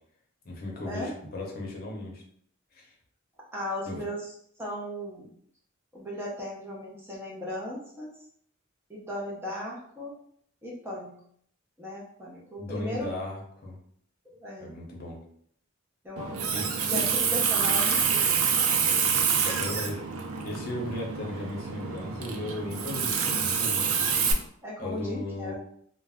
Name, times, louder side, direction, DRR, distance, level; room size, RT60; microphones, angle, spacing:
voice 1, 0.4-2.2 2.7-2.9 3.9-4.0 12.6-13.8 14.6-15.2 16.5-16.9 19.4-20.0 20.4-23.9 24.8-25.5, left 1 dB, 45° left, -1 dB, 0.7 m, -36 dB
voice 2, 3.5-4.3 4.6-5.3 5.9-8.1 8.9-10.1 10.6-11.1 11.8-13.1 14.3-14.8 16.0-16.5 16.9-18.4 24.6-25.5, left 1 dB, 10° right, -4 dB, 0.5 m, -36 dB
Water tap faucet, 16.2-24.3, right 6 dB, 90° right, 0.4 m, -27 dB
2.4 x 2.1 x 3.4 m, 0.65 s
head